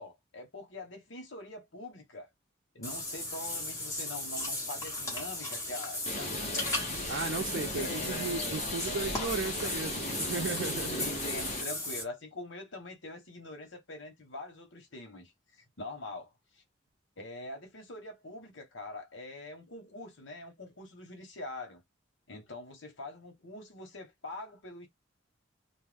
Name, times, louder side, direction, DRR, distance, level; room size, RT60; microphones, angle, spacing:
voice 1, 0.0-2.3 2.7-7.1 7.7-9.4 10.3-10.6 11.0-16.3 17.2-21.8 22.3-24.9, left 2 dB, 80° left, 1.1 m, -44 dB
Water / Bathtub (filling or washing), 2.8-12.0, left 1 dB, 15° left, 1.2 m, -36 dB
Bird, 6.1-11.6, left 1 dB, 35° left, 0.7 m, -37 dB
voice 2, 7.1-11.0, right 4 dB, 80° right, 0.6 m, -35 dB
2.5 x 2.2 x 3.3 m
head